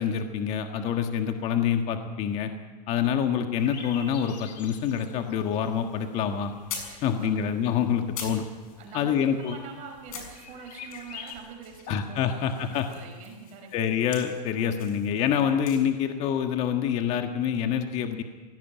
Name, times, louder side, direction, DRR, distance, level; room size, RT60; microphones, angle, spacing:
voice 1, 0.0-2.5 2.9-6.5 7.0-8.4 8.9-9.6 11.9-12.9 13.7-18.2, left 8 dB, 30° left, 6 dB, 1.6 m, -26 dB
sound 1, 3.5-11.4, left 6 dB, 85° left, 3.8 m, -47 dB
sound 2, 5.7-9.3 9.6-9.7 9.9-15.8, left 7 dB, 60° left, 6.3 m, -44 dB
voice 2, 6.9-7.3 8.8-13.7, right 5 dB, 35° right, 3 dB, 5.3 m, -44 dB
19.5 x 17.5 x 9.2 m, 1.3 s
supercardioid pair, 150°, 21 cm